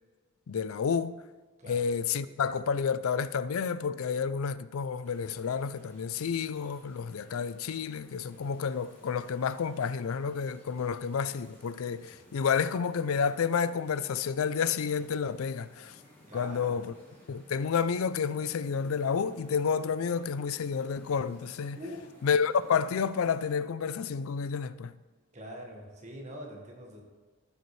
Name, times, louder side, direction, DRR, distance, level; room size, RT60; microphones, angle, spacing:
voice 1, 0.5-1.2 1.6-16.0 16.3-16.9 17.3-21.8 22.2-24.9, left 6 dB, 80° left, 0.4 m, -30 dB
sound 1, 5.0-23.5, equal, 10° left, 3.2 m, -57 dB
voice 2, 16.3-16.8 21.8-22.1 25.3-27.0, equal, 30° right, 1.5 m, -43 dB
15.0 x 6.9 x 3.2 m
head